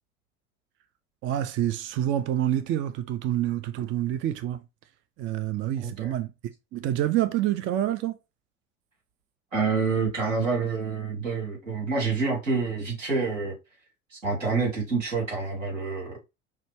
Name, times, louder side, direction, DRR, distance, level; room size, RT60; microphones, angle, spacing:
voice 1, 1.2-4.6 5.2-6.3 6.7-8.2, right 12 dB, 35° right, 0.4 m, -27 dB
voice 2, 9.5-13.6 14.1-16.2, right 4 dB, 85° right, 2.4 m, -27 dB
5.5 x 2.2 x 3.3 m
figure-of-eight pair, 65°, 37 cm